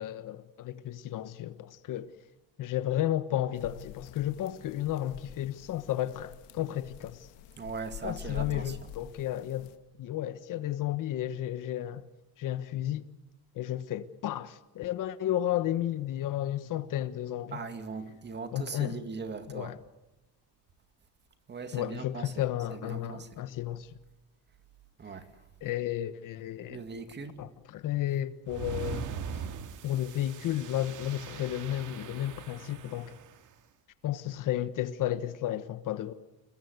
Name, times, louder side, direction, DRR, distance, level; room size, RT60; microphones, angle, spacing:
voice 1, 0.0-2.1 2.6-7.3 8.0-9.7 10.0-12.0 12.4-13.0 13.5-17.6 18.5-19.0 19.5-19.8 21.7-23.9 25.6-26.8 27.4-29.1 29.8-33.2 34.0-36.1, left 12 dB, 50° left, 1.2 m, -33 dB
sound 1, 3.5-9.8, left 9 dB, 85° left, 2.3 m, -46 dB
voice 2, 7.6-8.8 17.5-19.7 21.5-22.4 22.7-23.3 25.0-25.3 26.7-27.4, right 5 dB, 25° right, 2.2 m, -40 dB
sound 2, 28.5-33.4, right 7 dB, 50° right, 2.1 m, -41 dB
28.5 x 21.5 x 8.1 m
cardioid pair, 150°, 41 cm